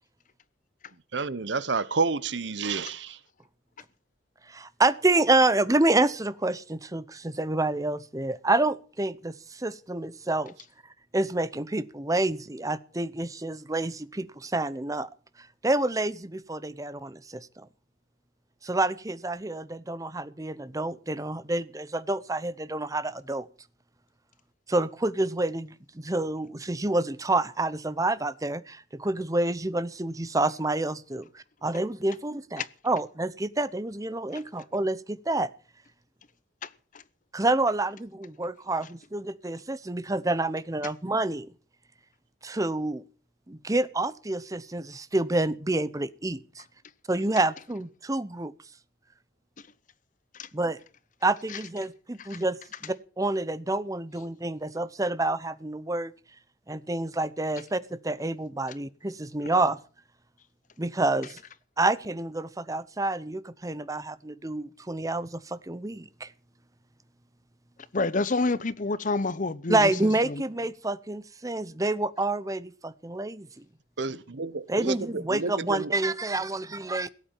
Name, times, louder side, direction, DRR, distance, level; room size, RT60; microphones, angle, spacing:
voice 1, 1.1-3.2 74.0-75.9, right 4 dB, 65° right, 0.9 m, -30 dB
voice 2, 4.5-10.5 11.1-15.1 15.4-17.7 18.6-23.5 24.7-35.5 37.3-41.5 42.4-43.0 43.5-46.6 47.1-48.5 50.5-50.8 51.2-56.1 56.7-59.8 60.8-61.4 61.8-66.3 69.7-73.6 74.7-77.1, right 2 dB, 20° right, 0.8 m, -28 dB
voice 3, 67.9-69.9 70.3-70.4, left 3 dB, 45° left, 0.8 m, -28 dB
17.0 x 8.5 x 8.7 m
head